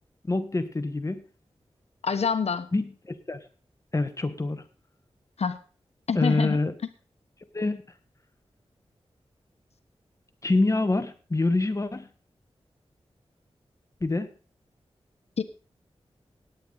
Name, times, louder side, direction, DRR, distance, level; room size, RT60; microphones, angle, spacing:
voice 1, 0.3-1.2 2.7-3.4 3.9-4.6 6.1-6.7 7.5-7.8 10.4-12.1 14.0-14.3, left 2 dB, 30° left, 9 dB, 1.3 m, -26 dB
voice 2, 2.0-2.7 5.4-5.6 6.1-6.6 15.4-15.5, left 6 dB, 80° left, 9 dB, 1.2 m, -26 dB
17.5 x 9.3 x 4.0 m, 0.37 s
wide cardioid pair, 110°, 11 cm